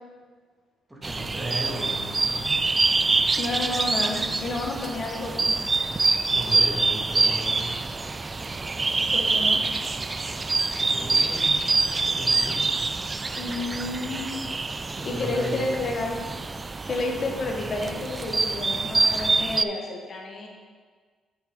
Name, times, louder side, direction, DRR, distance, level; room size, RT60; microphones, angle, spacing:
voice 1, 0.9-2.6 6.3-7.7 10.7-11.5 11.8-12.6 14.9-16.0, right 1 dB, 10° right, -4 dB, 2.2 m, -36 dB
sound 1, 1.0-19.6, right 3 dB, 25° right, 0.3 m, -25 dB
voice 2, 3.4-5.6 9.1-9.6 13.4-14.3 15.0-16.2 16.9-20.5, left 2 dB, 50° left, 1 dB, 1.4 m, -30 dB
7.6 x 6.5 x 3.8 m, 1.5 s
cardioid pair, 90°, 0 cm